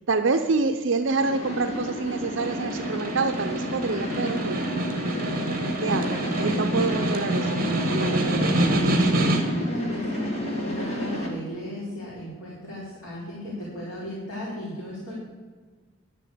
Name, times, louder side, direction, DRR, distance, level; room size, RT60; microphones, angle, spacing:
voice 1, 0.1-4.7 5.8-9.1, right 4 dB, 65° right, 7 dB, 0.6 m, -27 dB
sound 1, 1.2-11.3, left 1 dB, 30° left, 2.2 m, -31 dB
Snare drum, 2.2-9.7, right 1 dB, 45° right, 1.8 m, -26 dB
voice 2, 9.4-15.1, left 1 dB, 70° left, -7 dB, 4.0 m, -36 dB
11.0 x 7.6 x 8.4 m, 1.5 s
head